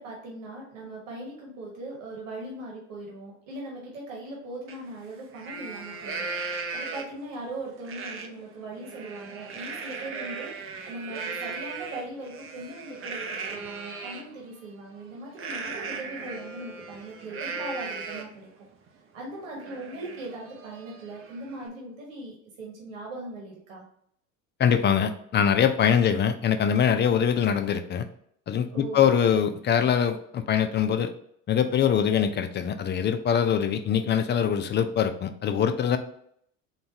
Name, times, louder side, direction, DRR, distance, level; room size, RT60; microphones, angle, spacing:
voice 1, 0.0-6.3 6.7-10.5 10.8-18.5 19.1-23.8 28.7-29.1, right 2 dB, 90° right, -2 dB, 1.3 m, -39 dB
Livestock farm animals working animals, 4.7-4.8 5.2-7.3 7.8-8.3 8.7-14.2 15.3-18.4 18.9-19.0 19.3-21.7, right 4 dB, 35° right, 0.7 m, -37 dB
voice 2, 24.6-28.0 28.5-31.1 31.5-36.0, left 8 dB, 30° left, 9 dB, 0.5 m, -23 dB
3.9 x 2.4 x 4.4 m, 0.68 s
hypercardioid pair, 80°, 37 cm